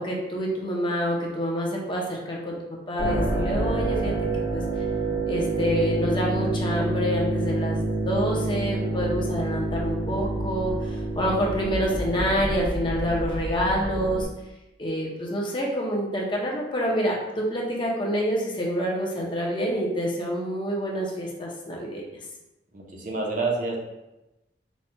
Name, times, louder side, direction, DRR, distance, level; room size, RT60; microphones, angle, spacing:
voice 1, 0.0-4.1 4.5-4.6 5.3-14.3 14.8-22.0, equal, 25° left, -2 dB, 0.7 m, -27 dB
sound 1, 3.0-14.2, right 2 dB, 55° left, 1.1 m, -27 dB
voice 2, 22.7-23.8, right 3 dB, 50° right, -2 dB, 0.8 m, -28 dB
4.1 x 2.3 x 4.4 m, 0.96 s
head